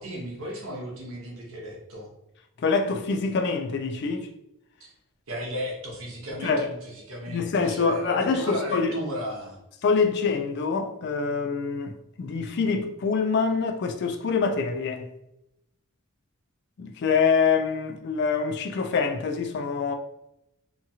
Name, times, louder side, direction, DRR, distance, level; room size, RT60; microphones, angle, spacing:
voice 1, 0.0-2.1 5.3-9.6, equal, 65° right, 0.8 m, -35 dB
voice 2, 2.6-4.3 6.4-6.7 7.3-8.9 9.8-15.1 16.8-19.9, left 5 dB, 50° left, 0.3 m, -25 dB
2.8 x 2.3 x 2.7 m
head